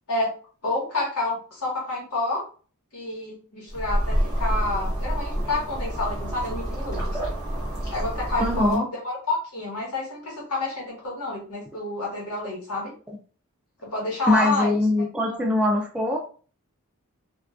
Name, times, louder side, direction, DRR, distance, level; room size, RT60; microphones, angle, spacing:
voice 1, 0.6-2.4 2.9-7.2 7.9-12.9 13.8-14.8 15.3-15.4, left 2 dB, 90° left, -4 dB, 1.1 m, -29 dB
sound 1, 3.7-8.8, equal, 15° left, 0.8 m, -28 dB
voice 2, 8.4-8.9 14.3-16.2, left 1 dB, 5° right, 0 dB, 0.3 m, -22 dB
2.4 x 2.2 x 2.4 m, 0.39 s
head